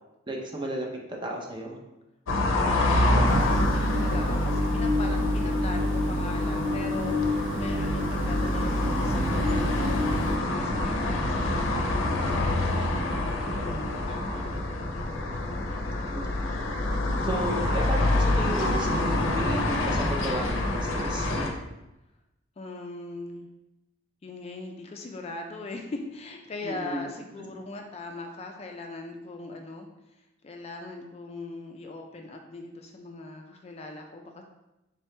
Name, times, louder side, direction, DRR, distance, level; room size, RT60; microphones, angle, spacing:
voice 1, 0.3-1.8 16.1-16.2 17.2-21.4 26.6-27.0, right 1 dB, 25° right, 0 dB, 0.6 m, -34 dB
sound 1, 2.3-21.5, left 1 dB, 80° left, 0.6 m, -27 dB
voice 2, 2.5-14.6 22.6-23.5 24.2-29.9 30.1-34.4, left 2 dB, 30° left, 3 dB, 0.3 m, -40 dB
sound 2, 3.3-10.4, left 1 dB, 75° right, 0.5 m, -27 dB
3.8 x 3.0 x 3.2 m, 0.96 s
head